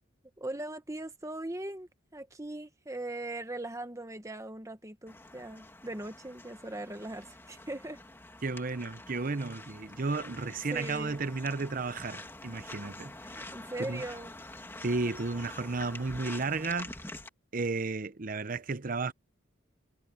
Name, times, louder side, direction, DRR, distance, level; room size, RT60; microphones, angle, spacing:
voice 1, 0.4-8.0 10.7-11.2 13.2-14.3, right 1 dB, 15° right, 1.4 m, -40 dB
sound 1, 5.1-17.3, left 2 dB, 10° left, 2.5 m, -46 dB
voice 2, 8.4-13.1 13.8-14.0 14.8-16.9 17.5-19.1, right 3 dB, 45° right, 0.8 m, -33 dB
head